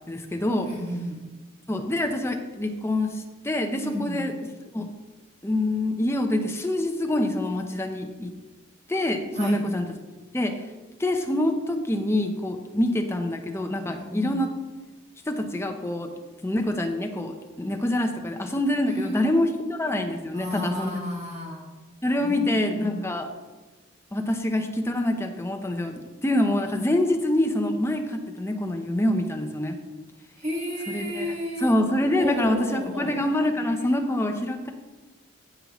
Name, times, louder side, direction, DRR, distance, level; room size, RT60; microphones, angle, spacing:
voice 1, 0.1-0.7 1.7-4.3 4.7-4.9 5.4-8.3 8.9-9.9 10.3-10.7 11.0-14.5 15.3-16.1 16.4-21.0 22.0-23.3 24.1-29.8 30.9-31.3 31.6-34.7, left 1 dB, 10° left, 4 dB, 0.7 m, -26 dB
voice 2, 0.6-1.2 3.8-4.2 9.3-9.6 13.9-14.3 18.8-19.6 20.3-21.7 22.2-23.0 30.4-31.7 32.2-33.2, equal, 35° right, -2 dB, 1.9 m, -33 dB
16.0 x 5.4 x 3.0 m, 1.2 s
head